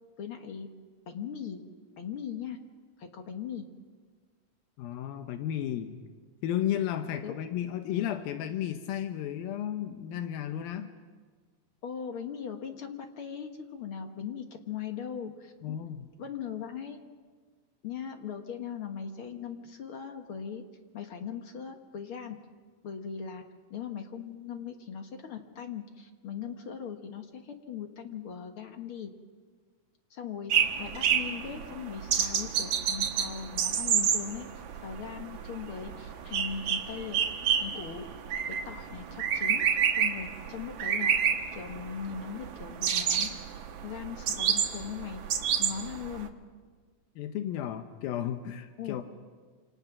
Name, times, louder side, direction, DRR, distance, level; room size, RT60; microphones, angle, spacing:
voice 1, 0.2-0.7 1.1-1.6 2.0-2.6 3.0-3.6 7.2-7.3 11.8-15.8 16.2-17.0 17.8-20.6 20.9-22.3 22.8-23.4 23.7-29.1 30.1-34.5 34.8-37.2 37.6-38.0 38.6-39.6 39.9-41.1 41.5-43.6 43.8-45.2 45.6-46.3 48.8-49.0, left 7 dB, 55° left, 5 dB, 1.6 m, -39 dB
voice 2, 4.8-6.0 6.4-10.9 15.6-16.1 47.2-49.1, left 10 dB, 85° left, 7 dB, 2.8 m, -33 dB
sound 1, 30.5-46.3, right 8 dB, 60° right, 2.5 m, -30 dB
28.0 x 26.5 x 6.0 m, 1.5 s
omnidirectional pair, 4.1 m